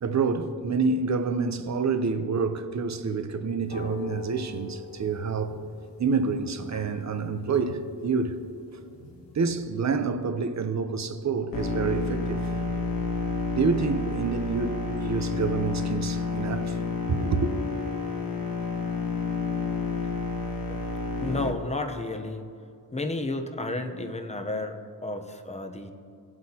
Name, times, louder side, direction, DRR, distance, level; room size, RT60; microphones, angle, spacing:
voice 1, 0.0-5.6 6.0-8.4 9.3-12.5 13.5-16.8 17.1-17.5, right 4 dB, 45° right, 0.7 m, -27 dB
sound 1, 3.6-9.6, left 3 dB, 80° left, 2.0 m, -43 dB
sound 2, 11.5-21.5, left 3 dB, 55° left, 1.3 m, -30 dB
voice 2, 20.0-20.4 20.7-20.8 21.2-22.4 22.9-25.9, left 2 dB, 15° left, 0.8 m, -32 dB
19.0 x 7.9 x 2.9 m
wide cardioid pair, 150°, 41 cm